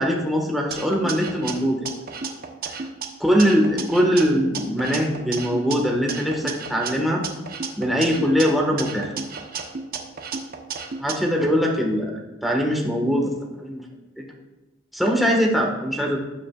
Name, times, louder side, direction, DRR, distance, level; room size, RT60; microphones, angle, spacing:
voice 1, 0.0-1.9 3.2-7.2 7.8-9.1 11.0-12.1 12.4-13.8 14.9-16.2, equal, ahead, -1 dB, 1.6 m, -22 dB
sound 1, 0.7-3.1 3.4-5.8 6.1-8.4 8.8-11.1, right 5 dB, 50° right, 1.0 m, -32 dB
18.0 x 7.6 x 2.4 m, 1.1 s
head